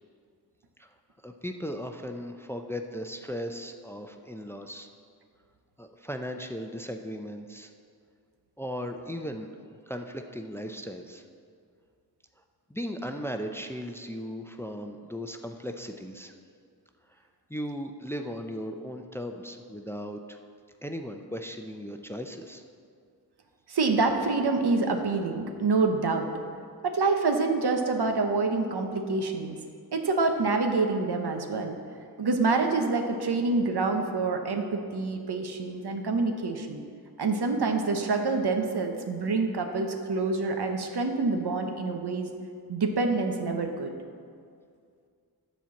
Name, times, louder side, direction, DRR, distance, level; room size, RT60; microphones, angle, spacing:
voice 1, 1.2-4.9 5.8-7.7 8.6-9.5 9.9-11.2 12.7-16.3 17.5-20.4 20.8-22.6, equal, 5° left, 5 dB, 0.5 m, -37 dB
voice 2, 23.7-26.3 26.8-29.6 29.9-31.8 32.2-36.8 37.2-42.3 42.7-43.9, right 3 dB, 85° right, 4 dB, 0.9 m, -27 dB
10.0 x 4.5 x 7.1 m, 2.2 s
wide cardioid pair, 75°, 38 cm